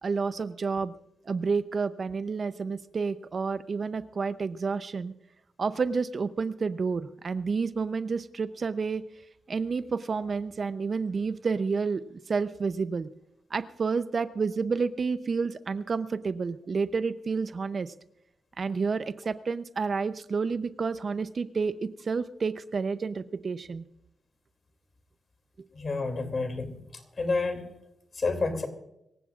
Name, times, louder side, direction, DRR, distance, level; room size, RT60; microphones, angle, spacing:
voice 1, 0.0-0.9 1.3-5.1 5.6-9.0 9.5-13.1 13.5-17.9 18.6-23.8, right 5 dB, 45° right, 13 dB, 0.6 m, -30 dB
voice 2, 25.7-27.6 28.1-28.7, left 3 dB, 40° left, 6 dB, 2.6 m, -30 dB
25.5 x 15.5 x 2.4 m, 0.84 s
cardioid pair, 100°, 0 cm